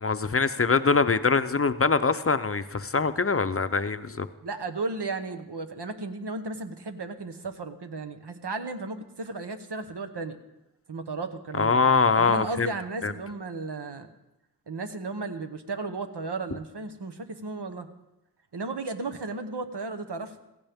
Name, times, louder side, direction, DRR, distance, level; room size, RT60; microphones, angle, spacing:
voice 1, 0.0-4.3 11.5-12.7 13.0-13.1, left 4 dB, 35° left, 11 dB, 0.6 m, -23 dB
voice 2, 4.4-10.4 10.9-11.8 12.2-14.1 14.7-17.9 18.5-20.4, right 3 dB, 75° right, 8 dB, 1.0 m, -34 dB
16.0 x 15.0 x 3.5 m, 0.94 s
wide cardioid pair, 55°, 40 cm